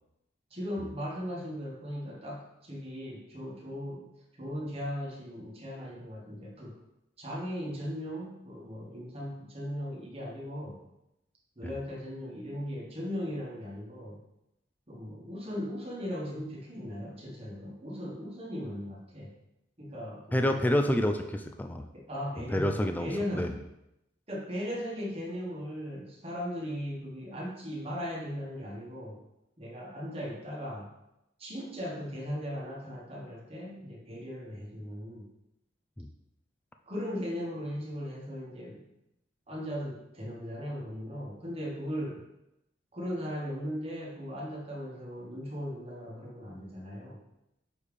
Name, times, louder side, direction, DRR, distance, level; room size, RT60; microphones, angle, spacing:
voice 1, 0.5-4.0 4.3-6.7 7.2-10.8 11.6-14.2 14.9-19.3 19.8-20.6 21.9-23.5 24.3-29.2 29.6-30.9 31.4-35.3 36.9-38.8 39.5-42.2 42.9-47.2, equal, 30° right, -3 dB, 1.3 m, -38 dB
voice 2, 20.3-21.8 22.5-23.1 23.3-23.5 36.0-36.1, left 1 dB, 10° left, 6 dB, 0.3 m, -28 dB
6.4 x 3.5 x 5.0 m, 0.87 s
head